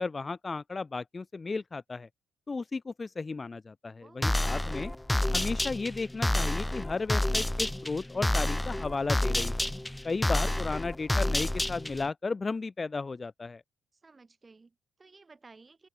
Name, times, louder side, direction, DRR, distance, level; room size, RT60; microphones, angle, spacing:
voice 1, 0.0-2.1 2.5-4.9 5.3-9.7 10.0-13.6, left 4 dB, 20° left, 1.4 m, -34 dB
voice 2, 4.0-4.8 14.0-15.9, right 3 dB, 20° right, 4.9 m, -56 dB
sound 1, 4.2-12.1, left 1 dB, 5° left, 0.3 m, -29 dB
open air
cardioid pair, 135°, 0 cm